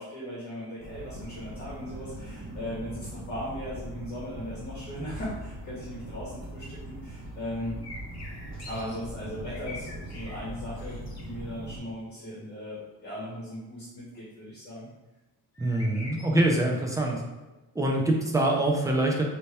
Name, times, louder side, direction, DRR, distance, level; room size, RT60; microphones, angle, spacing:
voice 1, 0.0-7.8 8.7-14.9, equal, 25° left, -7 dB, 1.3 m, -38 dB
sound 1, 0.8-11.8, right 1 dB, 30° right, 1.1 m, -41 dB
sound 2, 7.8-9.0 9.3-10.4 10.7-11.2 15.5-16.4, left 2 dB, 40° left, 1.1 m, -44 dB
voice 2, 15.6-17.2 17.7-19.2, right 1 dB, 10° right, -1 dB, 0.5 m, -24 dB
4.4 x 2.8 x 3.4 m, 1.1 s
cardioid pair, 150°, 40 cm